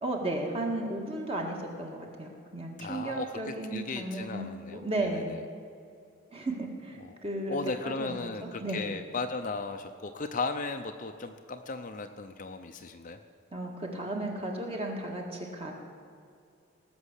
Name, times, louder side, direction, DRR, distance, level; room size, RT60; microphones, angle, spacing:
voice 1, 0.0-5.4 6.3-7.6 7.8-8.9 13.5-15.7, right 1 dB, 30° right, 0 dB, 1.8 m, -34 dB
voice 2, 2.8-5.4 7.0-7.1 7.5-13.2, left 3 dB, 40° left, 6 dB, 0.6 m, -36 dB
18.5 x 6.2 x 8.2 m, 2.4 s
head